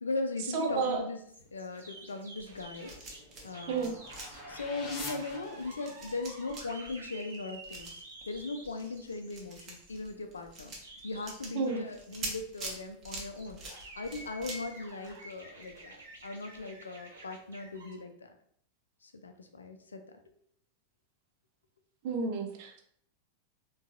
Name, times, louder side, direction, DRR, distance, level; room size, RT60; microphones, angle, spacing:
voice 1, 0.0-1.2 1.5-2.9 3.4-3.9 4.5-10.7 11.0-13.6 14.0-18.1 19.0-20.0, left 3 dB, 75° left, 6 dB, 0.4 m, -38 dB
voice 2, 0.5-1.0 3.7-4.0 11.5-11.8 22.0-22.8, right 4 dB, 45° right, 3 dB, 0.6 m, -31 dB
sound 1, 1.3-18.0, right 2 dB, 70° right, 1.0 m, -50 dB
sound 2, 2.4-3.5 3.7-15.8 16.1-16.3 16.5-16.6, right 2 dB, 30° right, 0.9 m, -45 dB
sound 3, 2.8-6.2, left 2 dB, 30° left, 0.7 m, -46 dB
3.8 x 2.3 x 2.4 m, 0.65 s
figure-of-eight pair, 90°, 0 cm